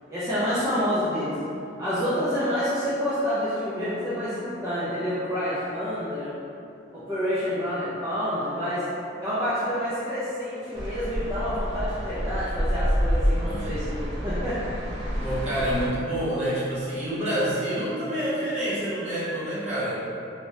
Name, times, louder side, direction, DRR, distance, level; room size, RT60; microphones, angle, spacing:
voice 1, 0.1-1.4 1.8-6.4 6.9-8.9 9.2-14.6, equal, 15° right, -14 dB, 0.5 m, -28 dB
sound 1, 10.7-15.9, equal, 70° right, 0.7 m, -28 dB
voice 2, 13.4-13.9 15.2-20.0, right 1 dB, 35° right, -10 dB, 0.9 m, -28 dB
3.1 x 2.9 x 2.7 m, 2.6 s
head